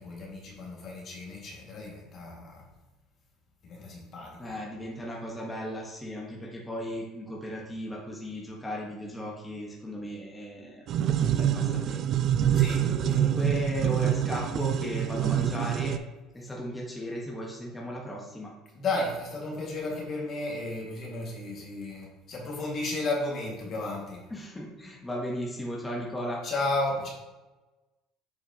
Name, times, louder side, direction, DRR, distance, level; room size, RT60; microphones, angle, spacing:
voice 1, 0.0-2.6 3.6-4.7 12.5-13.5 18.7-24.2 26.4-27.1, left 2 dB, 50° left, -2 dB, 2.0 m, -33 dB
voice 2, 4.4-10.9 11.2-12.1 12.6-16.0 16.3-18.5 24.3-26.4, equal, 10° left, -3 dB, 1.3 m, -36 dB
sound 1, 10.9-16.0, right 10 dB, 55° right, 0.4 m, -26 dB
7.2 x 4.7 x 2.9 m, 1.1 s
supercardioid pair, 85°, 0 cm